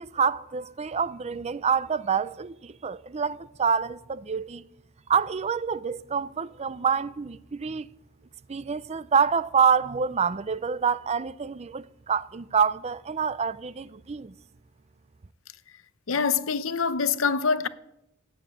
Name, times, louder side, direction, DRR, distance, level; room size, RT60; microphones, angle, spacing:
voice 1, 0.0-4.6 5.1-7.9 8.5-14.3, right 6 dB, 35° right, 0.5 m, -27 dB
voice 2, 16.1-17.7, left 5 dB, 85° left, 0.8 m, -25 dB
16.0 x 9.0 x 9.2 m
head